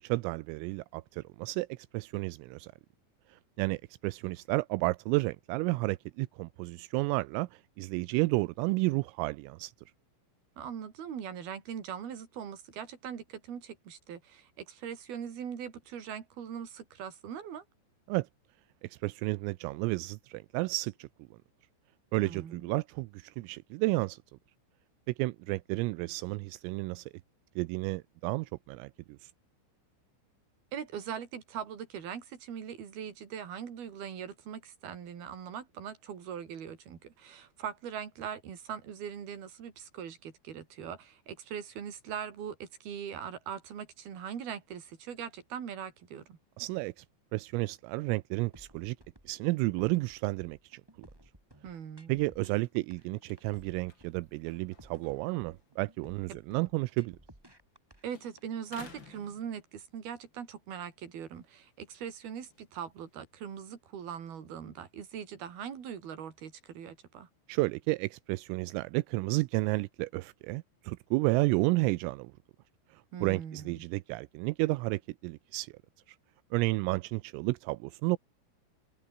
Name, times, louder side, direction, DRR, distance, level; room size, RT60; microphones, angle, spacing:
voice 1, 0.0-2.7 3.3-9.7 18.1-18.3 18.8-21.1 22.1-24.2 25.1-27.1 27.6-28.9 29.2-29.3 46.6-47.0 47.3-49.0 49.3-50.8 52.1-57.2 67.5-72.3 72.9-75.7 76.5-78.2, right 23 dB, 85° right, 3.3 m, -32 dB
voice 2, 10.6-17.6 22.2-22.7 30.7-46.4 51.6-52.2 56.3-56.4 58.0-67.3 73.1-73.8, right 8 dB, 50° right, 5.0 m, -41 dB
sound 1, 48.5-58.5, right 1 dB, 5° right, 3.1 m, -57 dB
sound 2, 52.2-57.8 58.1-60.1 60.6-63.7, left 4 dB, 25° left, 3.5 m, -58 dB
omnidirectional pair, 5.9 m